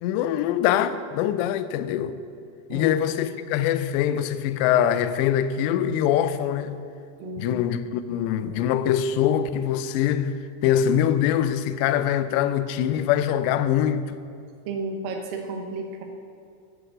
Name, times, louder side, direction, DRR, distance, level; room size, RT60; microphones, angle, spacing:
voice 1, 0.0-2.2 2.7-6.8 7.4-14.2, left 10 dB, 85° left, 2.5 m, -23 dB
voice 2, 7.2-7.6 14.7-16.0, right 3 dB, 75° right, 2.2 m, -32 dB
9.7 x 8.0 x 7.7 m
omnidirectional pair, 5.5 m